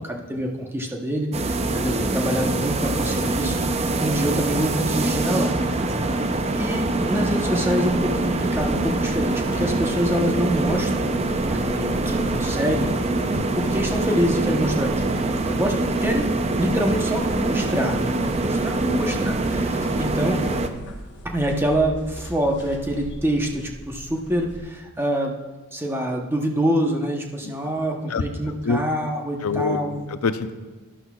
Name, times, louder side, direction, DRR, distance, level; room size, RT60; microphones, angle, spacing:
voice 1, 0.0-3.6 4.0-6.1 6.6-11.2 11.5-12.9 13.5-15.1 15.4-16.3 16.6-20.5 21.2-25.4 25.7-30.1, equal, 10° right, 1 dB, 0.8 m, -26 dB
sound 1, 1.3-20.7, right 2 dB, 30° right, 0.5 m, -24 dB
sound 2, 7.8-24.6, left 1 dB, 50° left, 1.2 m, -39 dB
voice 2, 29.4-29.8 30.1-30.5, left 4 dB, 75° left, 10 dB, 0.6 m, -24 dB
12.0 x 11.0 x 2.3 m, 1.2 s
head